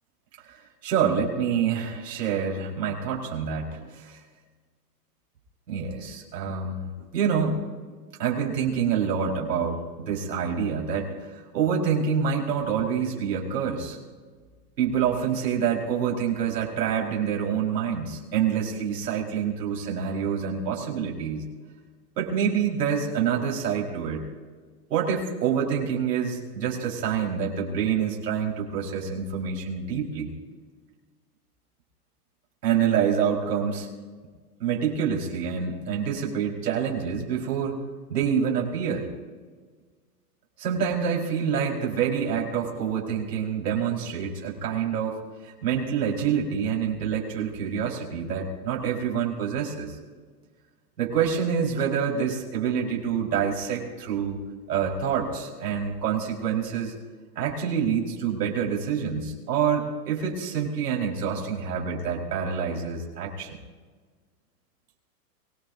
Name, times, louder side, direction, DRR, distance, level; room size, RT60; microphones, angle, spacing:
voice 1, 0.4-4.2 5.7-7.6 8.2-14.0 14.8-21.5 22.2-24.3 24.9-30.3 32.6-33.9 34.6-37.8 38.1-39.0 40.6-49.9 51.0-54.4 54.7-56.9 57.3-63.6, right 7 dB, 90° right, -1 dB, 4.6 m, -27 dB
24.5 x 19.0 x 2.7 m, 1.5 s
supercardioid pair, 175°, 47 cm